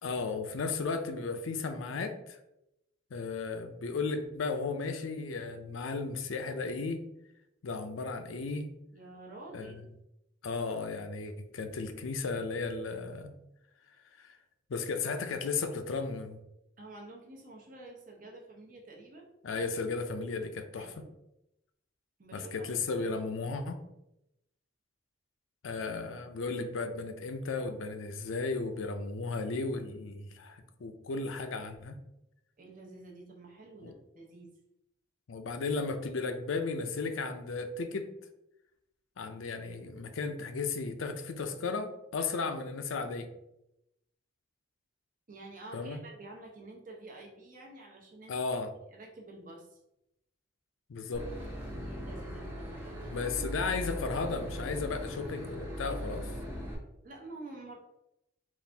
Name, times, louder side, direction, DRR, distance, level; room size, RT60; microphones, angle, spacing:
voice 1, 0.0-2.4 3.1-7.0 7.6-8.7 9.5-9.7 10.4-13.3 14.2-14.4 14.7-16.4 19.4-20.9 22.3-23.8 25.6-32.0 33.8-33.9 35.3-38.1 39.2-43.3 45.7-46.0 48.3-48.7 50.9-51.3 53.1-56.3, left 4 dB, 85° left, 7 dB, 0.5 m, -35 dB
voice 2, 8.9-9.7 16.8-19.3 20.7-21.1 22.2-22.7 23.0-23.1 32.6-34.5 45.3-48.4 48.9-49.8 51.9-53.2 57.0-57.8, right 2 dB, 40° right, 0 dB, 0.8 m, -49 dB
Boat Water vehicle / Engine, 51.1-56.7, equal, 10° right, 0.7 m, -39 dB
4.1 x 2.5 x 3.3 m, 0.85 s
head